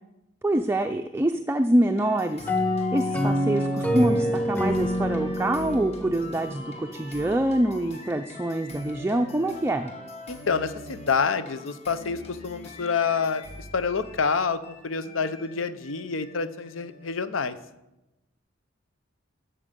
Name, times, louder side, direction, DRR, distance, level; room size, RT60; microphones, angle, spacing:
voice 1, 0.4-2.5 2.9-9.9, right 1 dB, 10° right, 6 dB, 0.4 m, -25 dB
sound 1, 2.0-17.1, left 1 dB, 35° left, 1.5 m, -43 dB
sound 2, 2.5-7.1, equal, 10° left, 0.9 m, -27 dB
voice 2, 10.3-13.4 13.7-17.5, left 5 dB, 90° left, 12 dB, 0.7 m, -27 dB
8.8 x 7.0 x 6.7 m, 0.94 s
head